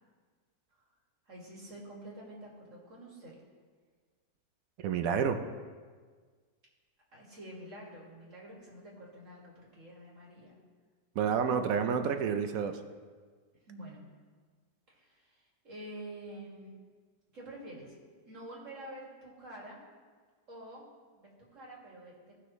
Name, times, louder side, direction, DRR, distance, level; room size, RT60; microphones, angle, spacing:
voice 1, 1.3-3.4 7.1-10.6 13.7-14.1 14.9-16.7 17.3-18.0 18.2-19.8 20.5-20.9 21.1-22.3, right 1 dB, 45° right, -4 dB, 2.3 m, -48 dB
voice 2, 4.8-5.4 11.2-12.8, right 7 dB, 65° right, 8 dB, 0.9 m, -29 dB
15.5 x 5.8 x 3.1 m, 1.6 s
omnidirectional pair, 1.9 m